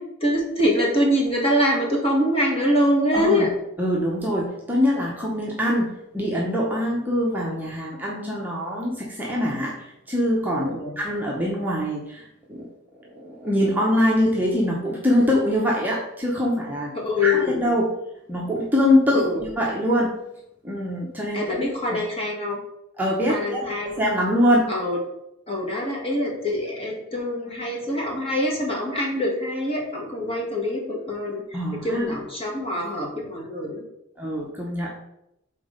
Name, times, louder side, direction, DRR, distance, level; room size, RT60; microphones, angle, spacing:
voice 1, 0.2-3.5 10.6-10.9 16.9-17.6 19.1-19.4 21.3-22.6 23.3-24.0 24.7-25.0 25.5-33.8, left 1 dB, 25° left, -2 dB, 1.6 m, -24 dB
voice 2, 3.1-3.5 3.8-12.7 13.1-16.9 17.2-17.9 18.3-20.1 20.6-21.4 23.0-24.7 31.5-32.1 34.2-34.9, equal, 10° right, -4 dB, 0.8 m, -23 dB
6.1 x 3.9 x 5.1 m, 0.82 s
head